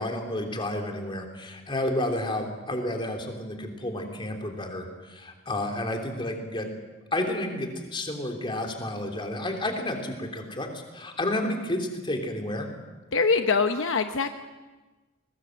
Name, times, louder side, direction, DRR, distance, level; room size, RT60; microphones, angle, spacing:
voice 1, 0.0-6.7 7.1-12.7, left 1 dB, 25° left, 3 dB, 3.2 m, -31 dB
voice 2, 13.1-14.3, left 4 dB, 65° left, 7 dB, 0.9 m, -23 dB
21.5 x 20.0 x 7.7 m, 1.2 s
head